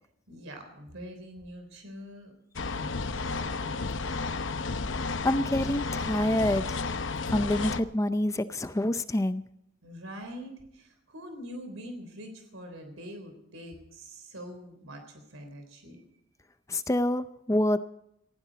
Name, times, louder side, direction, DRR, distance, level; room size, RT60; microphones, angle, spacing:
voice 1, 0.3-2.3 2.7-4.0 9.8-16.0, equal, 85° right, 5 dB, 3.7 m, -44 dB
sound 1, 2.6-7.8, left 4 dB, 65° left, 0.8 m, -32 dB
voice 2, 5.2-6.8 7.3-9.4 16.7-17.8, left 1 dB, 15° left, 12 dB, 0.5 m, -27 dB
19.5 x 16.0 x 4.1 m, 0.78 s
head